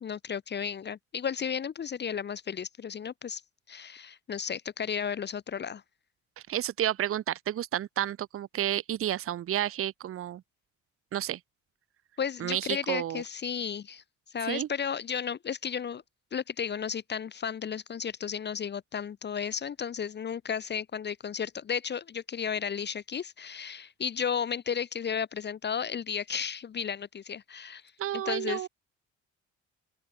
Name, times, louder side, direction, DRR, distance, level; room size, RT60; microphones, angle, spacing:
voice 1, 0.0-3.4 3.7-5.8 12.2-14.0 14.3-16.0 16.3-27.8 28.1-28.7, left 7 dB, 35° left, 0.6 m, -33 dB
voice 2, 6.5-10.4 11.1-11.4 12.4-13.2 14.5-14.7 28.0-28.7, right 12 dB, 45° right, 0.6 m, -31 dB
open air
cardioid pair, 90°, 30 cm